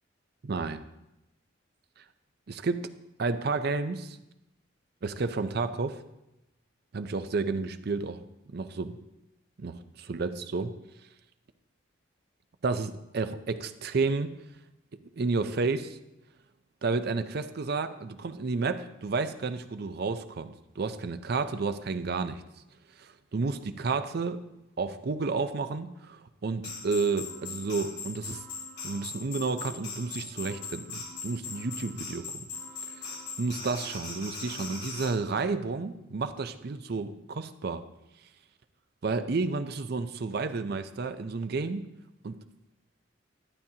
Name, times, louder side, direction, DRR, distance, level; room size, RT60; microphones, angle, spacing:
voice 1, 0.4-0.8 2.0-2.1 2.5-2.9 3.2-4.2 5.0-6.0 6.9-8.2 8.5-9.0 9.6-10.8 12.6-14.3 15.2-16.0 16.8-22.4 23.0-24.4 24.8-28.4 28.8-32.4 32.9-37.8 39.0-41.9 42.2-42.4, right 4 dB, 55° right, 10 dB, 0.5 m, -31 dB
sound 1, 26.6-35.1, left 4 dB, 60° left, 3.1 m, -40 dB
12.0 x 8.8 x 2.8 m, 0.90 s
head